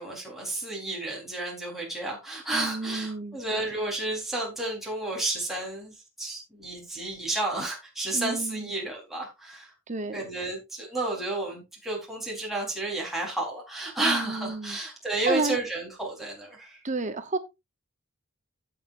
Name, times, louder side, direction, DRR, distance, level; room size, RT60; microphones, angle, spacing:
voice 1, 0.0-9.7 10.1-16.8, right 2 dB, ahead, 4.0 m, -31 dB
voice 2, 2.5-3.4 8.1-8.7 9.9-10.2 14.0-14.8 15.2-15.6 16.8-17.4, right 3 dB, 35° right, 1.0 m, -31 dB
16.0 x 6.9 x 2.6 m
head